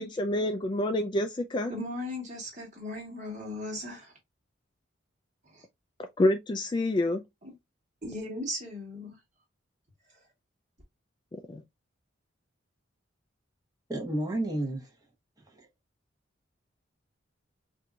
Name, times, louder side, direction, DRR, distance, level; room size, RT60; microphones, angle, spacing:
voice 1, 0.0-1.7 6.2-7.2 11.5-11.6, left 1 dB, 25° left, 0.3 m, -27 dB
voice 2, 1.7-4.1 5.5-5.6 8.0-9.1, left 1 dB, 35° right, 1.4 m, -37 dB
voice 3, 13.9-14.9 15.6-15.7, right 1 dB, 20° right, 1.0 m, -31 dB
4.4 x 2.6 x 2.3 m
head